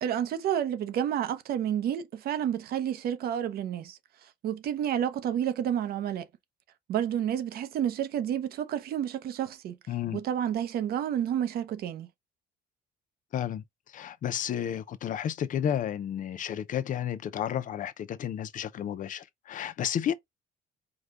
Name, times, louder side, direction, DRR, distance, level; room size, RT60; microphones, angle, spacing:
voice 1, 0.0-6.3 6.9-9.8 10.1-12.1, right 10 dB, 65° right, 0.8 m, -30 dB
voice 2, 9.9-10.2 13.3-13.6 13.9-20.1, left 9 dB, 50° left, 0.6 m, -32 dB
4.9 x 2.3 x 3.7 m
cardioid pair, 110°, 17 cm